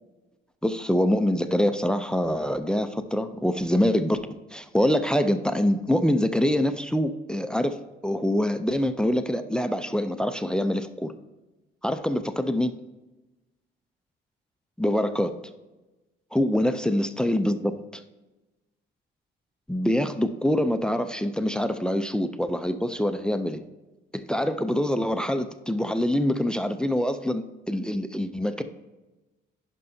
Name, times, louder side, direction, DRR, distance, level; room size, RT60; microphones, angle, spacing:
voice 1, 0.6-4.2 4.5-11.1 11.8-12.7 14.8-15.3 16.3-18.0 19.7-23.6 24.1-28.6, left 1 dB, 5° left, 10 dB, 0.4 m, -25 dB
11.0 x 5.3 x 2.7 m, 1.1 s
cardioid pair, 90°, 20 cm